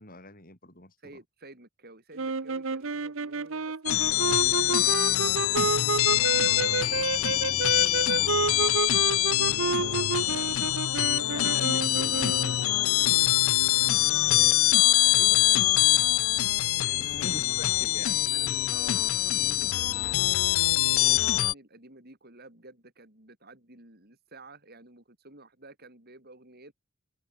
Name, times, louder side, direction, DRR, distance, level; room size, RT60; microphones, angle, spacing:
voice 1, 0.0-1.1 9.4-10.6 11.1-13.5 17.0-18.3, left 1 dB, 40° left, 7.7 m, -45 dB
voice 2, 1.0-5.8 6.1-7.4 14.2-15.7 16.0-16.1 16.8-17.4 18.3-26.7, right 2 dB, 45° right, 5.6 m, -51 dB
sound 1, 2.2-12.6, right 4 dB, 60° right, 0.9 m, -30 dB
sound 2, 3.9-21.5, left 15 dB, 70° left, 0.5 m, -24 dB
head